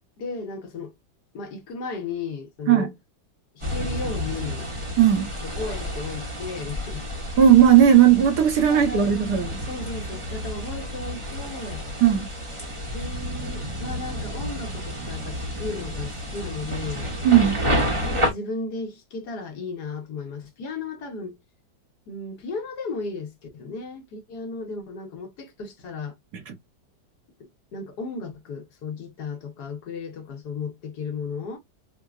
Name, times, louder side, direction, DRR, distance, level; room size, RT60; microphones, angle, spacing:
voice 1, 0.2-0.9 1.3-2.9 3.5-4.7 5.4-7.1 8.7-9.3 9.7-11.8 12.9-17.1 18.1-21.4 22.1-26.2 27.4-31.6, left 4 dB, 65° left, 1.4 m, -35 dB
sound 1, 3.6-18.3, equal, 25° right, 0.8 m, -30 dB
voice 2, 5.0-5.3 7.4-9.5 12.0-12.3 17.2-17.6 26.5-26.6, right 10 dB, 65° right, 1.3 m, -16 dB
4.5 x 2.0 x 2.4 m
omnidirectional pair, 1.9 m